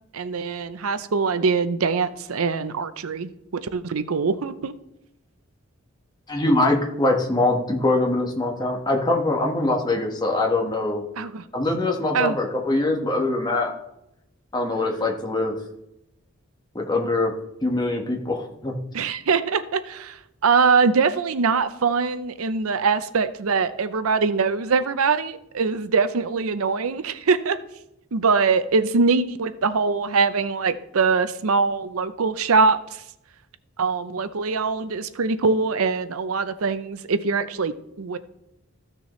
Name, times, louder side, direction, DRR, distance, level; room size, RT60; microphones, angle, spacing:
voice 1, 0.1-3.3 3.6-4.7 11.2-11.4 12.1-12.4 18.9-27.6 28.1-33.0 33.8-38.2, right 4 dB, 85° right, 13 dB, 0.6 m, -23 dB
voice 2, 6.3-11.0 11.5-13.7 14.5-15.5 16.7-17.3 17.6-18.7, left 2 dB, 20° left, 1 dB, 1.3 m, -23 dB
14.5 x 6.7 x 3.1 m, 0.82 s
head